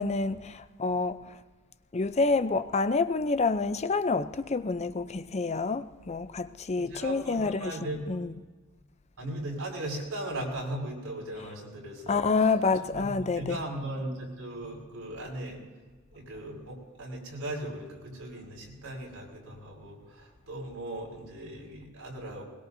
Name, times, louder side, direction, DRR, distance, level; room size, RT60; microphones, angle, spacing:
voice 1, 0.0-1.4 1.9-7.7 8.1-8.3 12.1-13.6, left 4 dB, 30° left, 0.5 m, -28 dB
voice 2, 6.8-8.1 9.2-12.5 12.9-15.6 16.1-22.4, right 1 dB, 90° right, 5.6 m, -38 dB
21.5 x 21.5 x 2.7 m
head